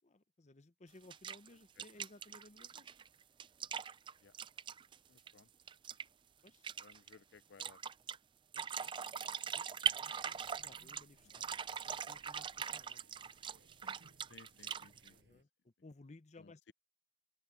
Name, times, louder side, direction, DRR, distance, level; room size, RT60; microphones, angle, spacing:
voice 1, 0.0-2.9 6.4-6.7 8.5-13.0 15.1-16.7, left 2 dB, 40° left, 0.8 m, -60 dB
sound 1, 1.1-1.5 1.8-5.4 5.7-6.0 6.5-7.2 7.6-8.2 8.5-11.0 11.3-15.1, right 7 dB, 30° right, 0.4 m, -41 dB
voice 2, 5.1-5.5 6.8-7.8 14.3-15.4 16.4-16.7, left 5 dB, 90° left, 0.5 m, -61 dB
sound 2, 10.1-15.4, right 2 dB, 80° right, 5.9 m, -67 dB
open air
head